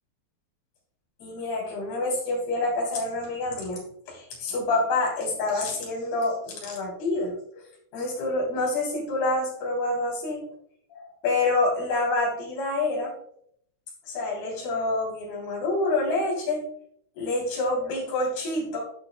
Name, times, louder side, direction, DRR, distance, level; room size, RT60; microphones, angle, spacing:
voice 1, 1.2-7.6 7.9-10.5 10.9-13.1 14.1-16.7 17.2-18.8, left 2 dB, 50° left, -3 dB, 5.0 m, -27 dB
12.0 x 6.5 x 2.2 m, 0.68 s
omnidirectional pair, 6.0 m